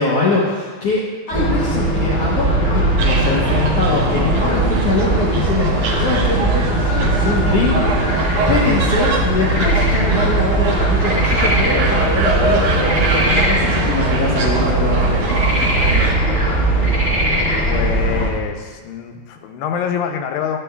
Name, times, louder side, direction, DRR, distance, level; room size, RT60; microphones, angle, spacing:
voice 1, 0.0-7.8 8.5-15.3, left 3 dB, 70° left, -5 dB, 1.4 m, -22 dB
sound 1, 1.3-18.3, right 1 dB, 10° left, 0.6 m, -19 dB
sound 2, 3.0-16.2, right 3 dB, 75° right, 1.5 m, -23 dB
voice 2, 17.7-20.6, left 8 dB, 90° left, 4 dB, 2.4 m, -26 dB
11.5 x 8.5 x 2.2 m, 1.5 s
omnidirectional pair, 3.9 m